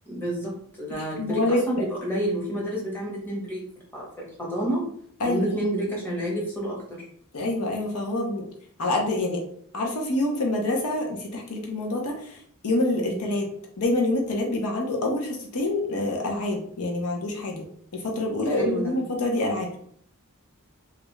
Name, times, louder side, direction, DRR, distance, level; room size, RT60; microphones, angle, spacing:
voice 1, 0.1-3.6 3.9-4.8 5.2-7.1 12.9-13.2 18.5-18.9, right 1 dB, 10° left, -4 dB, 1.1 m, -29 dB
voice 2, 1.2-1.6 5.2-5.5 7.3-8.4 8.8-9.4 9.7-12.4 12.6-13.4 13.8-17.6 17.9-19.8, left 2 dB, 75° left, 1 dB, 0.7 m, -26 dB
3.3 x 2.5 x 3.1 m, 0.62 s
head